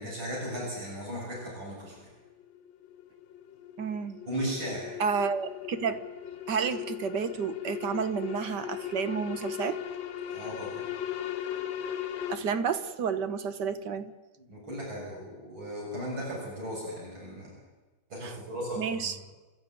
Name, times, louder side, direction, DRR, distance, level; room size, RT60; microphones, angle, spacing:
voice 1, 0.0-2.0 4.3-5.0 10.3-10.9 14.4-17.5 18.1-19.1, equal, 75° right, 7.8 m, -36 dB
sound 1, 1.8-12.4, left 10 dB, 75° left, 1.8 m, -38 dB
voice 2, 3.8-4.2 5.0-6.1 6.5-9.8 12.3-14.1 18.2-18.3 18.8-19.2, right 6 dB, 60° right, 1.7 m, -31 dB
27.5 x 13.5 x 9.2 m
omnidirectional pair, 2.2 m